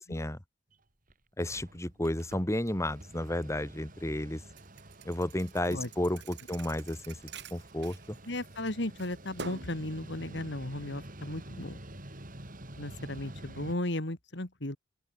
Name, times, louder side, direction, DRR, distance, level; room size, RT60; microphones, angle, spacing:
Mechanical fan, 0.7-0.8 1.1-1.2 1.4-13.7, right 1 dB, 45° right, 4.6 m, -49 dB
voice 1, 1.4-4.4 5.0-7.2 7.5-8.2, left 1 dB, 15° left, 1.6 m, -32 dB
Thump thud, 4.6-8.6 9.0-9.8, right 4 dB, 65° right, 2.9 m, -47 dB
voice 2, 8.3-11.8 12.8-14.8, left 1 dB, 65° left, 3.0 m, -35 dB
open air
head